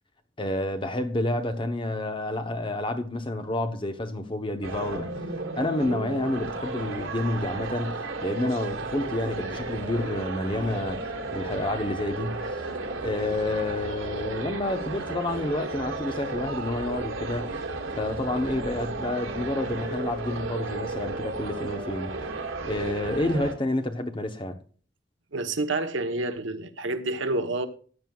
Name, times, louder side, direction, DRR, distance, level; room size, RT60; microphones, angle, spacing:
voice 1, 0.4-5.1 5.6-12.7 13.0-17.6 18.0-22.1 22.6-24.6, left 1 dB, 25° left, 1.0 m, -29 dB
sound 1, 4.6-23.5, right 3 dB, 90° right, 2.0 m, -33 dB
voice 2, 25.3-27.7, right 2 dB, 70° right, 1.1 m, -28 dB
15.0 x 9.0 x 2.4 m
head